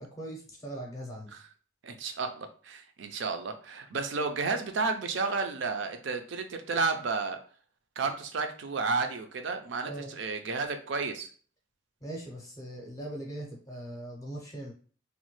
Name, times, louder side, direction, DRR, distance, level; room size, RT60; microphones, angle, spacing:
voice 1, 0.0-1.4 9.8-10.2 12.0-14.7, right 1 dB, 15° left, -1 dB, 0.6 m, -40 dB
voice 2, 1.8-7.4 8.0-11.3, right 4 dB, 65° right, 7 dB, 0.4 m, -32 dB
3.0 x 2.1 x 3.1 m, 0.41 s
head